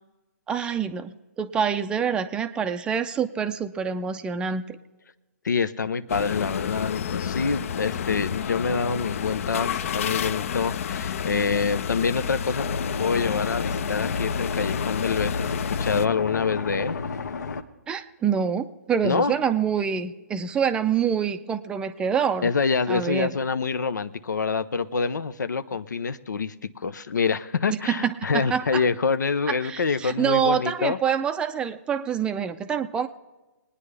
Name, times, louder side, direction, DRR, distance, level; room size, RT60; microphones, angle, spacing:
voice 1, 0.5-4.8 17.9-22.5 22.9-23.3 27.7-28.8 29.6-33.1, right 7 dB, 10° right, 10 dB, 0.4 m, -26 dB
voice 2, 5.4-12.7 13.0-17.0 19.0-19.3 22.4-31.0, left 5 dB, 90° left, 14 dB, 0.7 m, -26 dB
sound 1, 6.1-16.1, left 7 dB, 50° left, 0.6 m, -30 dB
sound 2, 12.6-17.6, left 5 dB, 75° left, 1.0 m, -32 dB
21.5 x 9.8 x 3.4 m, 1.1 s
hypercardioid pair, 150°, 10 cm